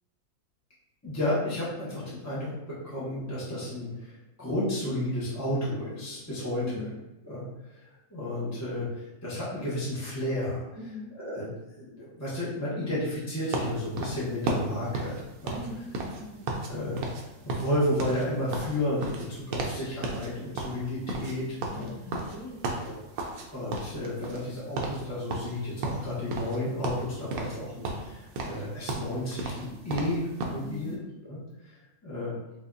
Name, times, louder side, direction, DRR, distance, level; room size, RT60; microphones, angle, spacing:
voice 1, 1.0-6.9 7.2-7.4 7.7-10.6 11.1-11.5 11.8-15.6 16.7-17.0 17.4-21.9 22.8-23.0 23.5-31.8 32.0-32.3, left 1 dB, 15° left, -9 dB, 0.6 m, -32 dB
voice 2, 6.6-7.0 10.7-11.1 15.5-16.5 21.6-22.6 30.6-31.0, left 2 dB, 50° right, -8 dB, 1.9 m, -42 dB
sound 1, 13.5-16.7 17.0-17.2 17.5-19.8 20.0-20.3 20.6-23.4 23.7-24.5 24.8-25.0 25.3-26.6 26.8-27.6 27.8-30.6, right 2 dB, 75° right, 1.0 m, -33 dB
4.9 x 2.3 x 2.5 m, 0.96 s
omnidirectional pair, 1.6 m